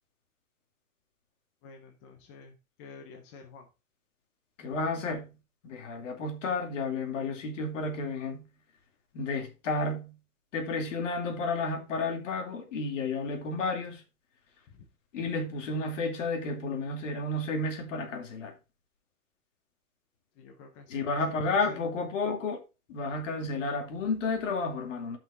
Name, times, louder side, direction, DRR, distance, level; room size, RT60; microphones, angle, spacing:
voice 1, 1.6-3.7 14.7-14.9 20.4-21.8, left 5 dB, 10° left, 0.4 m, -50 dB
voice 2, 4.6-5.3 5.6-8.4 9.1-10.1 10.5-14.0 15.1-18.5 20.9-22.6 22.9-25.2, left 3 dB, 55° left, 2.8 m, -31 dB
13.5 x 5.9 x 2.6 m
hypercardioid pair, 140°, 44 cm